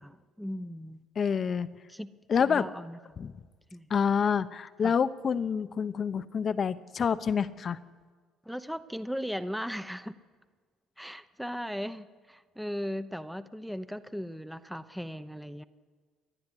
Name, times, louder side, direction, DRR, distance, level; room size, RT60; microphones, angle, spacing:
voice 1, 0.0-1.0 1.9-2.1 2.4-3.0 3.7-3.9 4.8-4.9 8.4-10.2 11.0-15.6, equal, ahead, 12 dB, 0.8 m, -37 dB
voice 2, 1.2-1.7 2.3-2.6 3.2-3.3 3.9-7.8, left 6 dB, 40° left, 13 dB, 0.8 m, -27 dB
28.5 x 11.5 x 9.9 m, 1.5 s
cardioid pair, 110°, 0 cm